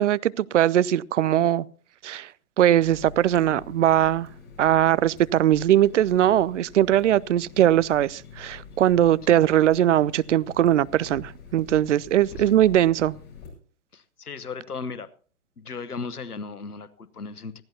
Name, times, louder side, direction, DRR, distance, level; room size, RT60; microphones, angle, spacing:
voice 1, 0.0-1.7 2.0-2.3 2.6-4.3 4.6-13.2, right 12 dB, 55° right, 0.5 m, -20 dB
Water tap faucet, 2.8-13.5, left 5 dB, 25° left, 7.0 m, -45 dB
voice 2, 13.9-15.1 15.6-17.6, left 4 dB, 85° left, 1.1 m, -36 dB
19.5 x 15.0 x 2.8 m
figure-of-eight pair, 115°, 44 cm